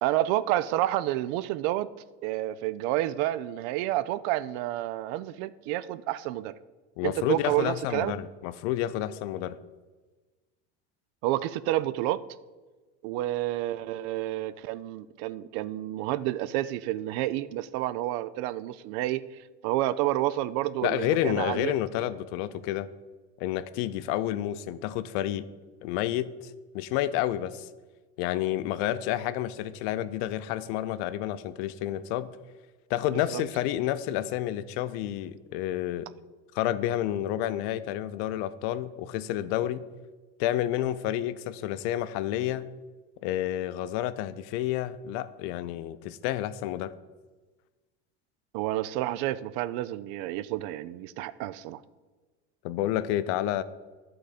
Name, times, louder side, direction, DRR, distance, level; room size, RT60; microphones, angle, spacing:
voice 1, 0.0-1.9 2.2-6.5 7.0-8.1 11.2-12.2 13.0-19.2 19.6-21.8 33.1-33.4 48.5-51.8, right 14 dB, 70° right, 16 dB, 0.5 m, -29 dB
voice 2, 7.0-9.6 20.8-22.9 23.4-25.5 25.8-27.7 28.2-32.3 32.9-36.1 36.5-39.8 40.4-42.7 43.2-46.9 52.6-53.6, left 12 dB, 75° left, 14 dB, 0.5 m, -30 dB
11.5 x 3.9 x 4.9 m, 1.3 s
supercardioid pair, 115°, 32 cm